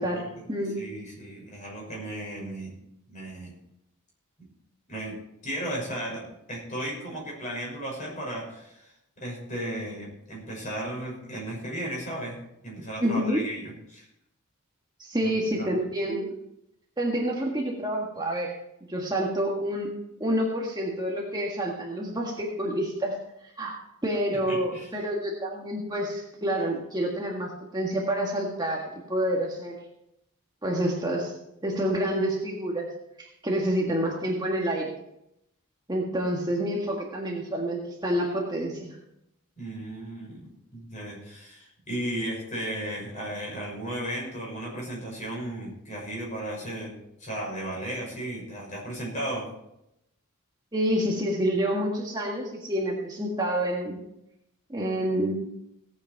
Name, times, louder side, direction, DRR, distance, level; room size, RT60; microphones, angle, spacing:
voice 1, 0.1-0.4 0.8-2.7 3.1-3.5 4.9-5.2 5.4-12.4 12.6-14.0 15.2-15.3 15.6-15.7 24.3-24.9 39.6-46.9 47.2-49.5, right 1 dB, 35° left, -3 dB, 6.2 m, -35 dB
voice 2, 13.0-13.5 15.0-16.3 17.0-18.5 18.9-19.9 20.2-23.7 24.0-29.8 30.6-31.3 31.6-32.9 33.2-34.9 35.9-39.0 50.7-54.0 54.7-55.3, right 1 dB, 20° right, -2 dB, 1.7 m, -28 dB
17.0 x 8.4 x 4.6 m, 0.82 s
head